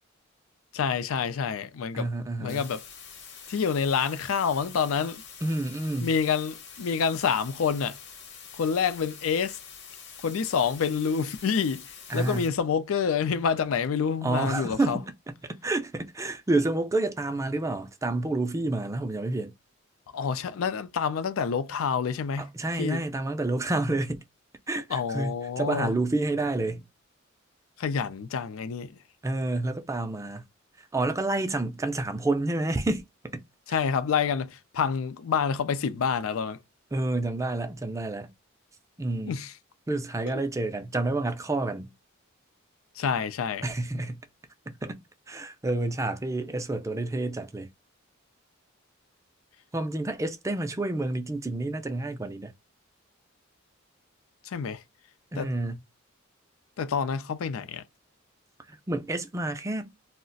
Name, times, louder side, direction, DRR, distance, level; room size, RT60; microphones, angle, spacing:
voice 1, 0.7-2.1 2.4-2.8 3.5-5.2 6.0-8.0 8.5-9.6 10.2-11.8 12.1-15.0 20.1-22.5 22.8-23.0 24.9-25.9 27.8-28.9 33.7-36.6 39.3-39.5 40.3-40.4 43.0-43.6 54.4-54.8 55.4-55.5 56.8-57.8, left 6 dB, 80° left, 0.4 m, -27 dB
voice 2, 1.9-2.7 5.4-6.1 12.1-12.5 14.2-15.1 15.4-19.5 22.4-24.2 24.7-26.8 29.2-30.5 30.8-33.4 36.9-38.3 39.0-39.4 39.9-41.9 43.6-44.2 44.7-45.0 45.3-47.7 49.7-52.5 55.3-55.8 58.7-59.9, right 2 dB, 15° right, 0.4 m, -29 dB
sound 1, 2.5-12.5, left 6 dB, 60° left, 0.9 m, -46 dB
2.4 x 2.1 x 3.8 m
head